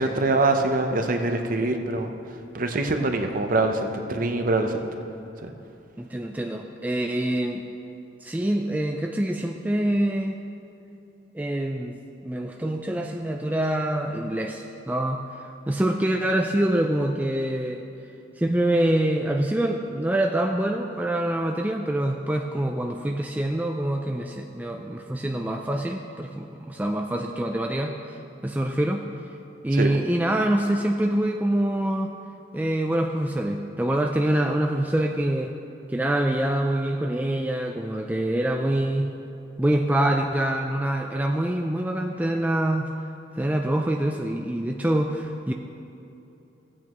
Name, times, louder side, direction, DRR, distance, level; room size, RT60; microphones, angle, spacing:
voice 1, 0.0-2.1 2.5-4.8 5.4-5.5 29.7-30.0, right 2 dB, 45° right, 5 dB, 0.7 m, -24 dB
voice 2, 6.0-7.6 8.2-10.4 11.3-12.0 12.2-17.8 18.4-28.2 28.4-29.0 29.6-32.1 32.5-35.5 35.9-39.1 39.6-42.9 43.4-45.5, right 1 dB, 10° right, 2 dB, 0.3 m, -25 dB
16.0 x 8.5 x 3.0 m, 2.8 s
head